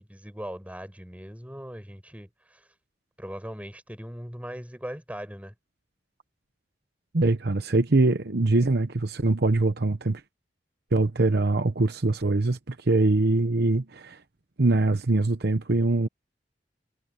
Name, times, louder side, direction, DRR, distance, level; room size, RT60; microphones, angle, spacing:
voice 1, 0.0-2.6 3.2-5.5, equal, 10° right, 5.6 m, -39 dB
voice 2, 7.1-10.2 10.9-14.2 14.6-16.1, right 2 dB, 60° right, 1.0 m, -23 dB
head